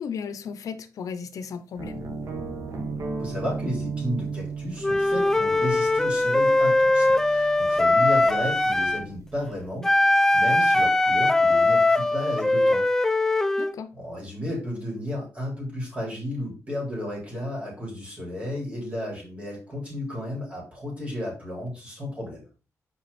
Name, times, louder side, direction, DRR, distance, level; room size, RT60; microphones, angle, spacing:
voice 1, 0.0-2.0 13.6-13.9, left 6 dB, 75° left, 0.7 m, -35 dB
sound 1, 1.8-9.7, right 4 dB, 60° right, 1.5 m, -36 dB
voice 2, 3.2-12.8 13.4-13.5 14.0-22.4, left 1 dB, 20° right, 4.3 m, -33 dB
Wind instrument woodwind instrument, 4.8-9.1 9.8-13.7, left 2 dB, 10° left, 0.4 m, -21 dB
6.3 x 5.0 x 4.2 m
wide cardioid pair, 125°, 6 cm